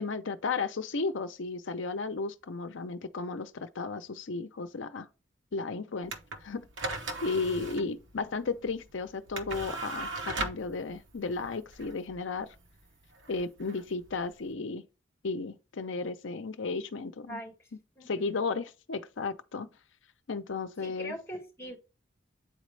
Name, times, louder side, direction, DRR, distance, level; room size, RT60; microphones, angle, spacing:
voice 1, 0.0-5.1 5.5-6.1 6.4-6.7 7.2-12.5 13.3-14.8 15.2-17.4 18.1-19.7 20.3-21.1, left 4 dB, 85° left, 0.6 m, -34 dB
sound 1, 6.0-14.5, right 2 dB, 80° right, 1.0 m, -39 dB
voice 2, 17.3-17.7 18.0-18.3 20.8-21.8, equal, 15° left, 2.2 m, -42 dB
8.8 x 4.1 x 3.3 m
head